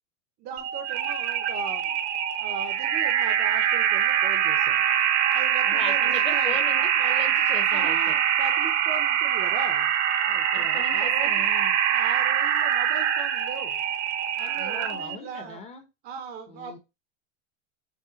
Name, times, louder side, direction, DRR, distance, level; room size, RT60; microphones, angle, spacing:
voice 1, 0.4-2.0 2.4-4.8 5.3-6.6 7.6-9.9 10.3-11.5 11.9-13.8 14.3-15.6 16.0-16.8, right 5 dB, 25° right, 7 dB, 0.5 m, -38 dB
sound 1, 0.6-15.2, right 9 dB, 65° right, 0.9 m, -24 dB
voice 2, 5.7-8.2 10.5-11.8 14.6-15.8 16.5-16.8, left 4 dB, 15° left, 6 dB, 0.6 m, -39 dB
5.5 x 2.1 x 3.8 m, 0.25 s
supercardioid pair, 150°, 37 cm